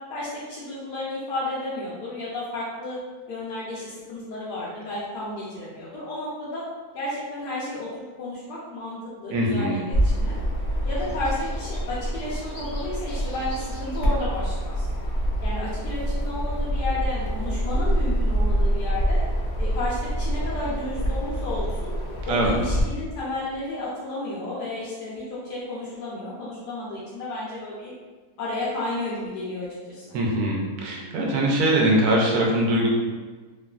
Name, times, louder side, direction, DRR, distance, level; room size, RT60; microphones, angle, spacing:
voice 1, 0.1-3.0 3.3-6.6 6.9-10.4 10.9-14.9 15.4-19.2 19.6-21.9 22.3-27.9 28.4-30.2, left 2 dB, 85° left, -8 dB, 1.3 m, -32 dB
voice 2, 9.3-9.8 22.3-22.5 30.1-32.9, right 1 dB, 75° right, -2 dB, 1.1 m, -22 dB
Bird vocalization bird call bird song, 9.9-22.8, equal, 60° left, 0.8 m, -26 dB
3.1 x 2.4 x 2.2 m, 1.3 s
omnidirectional pair, 1.7 m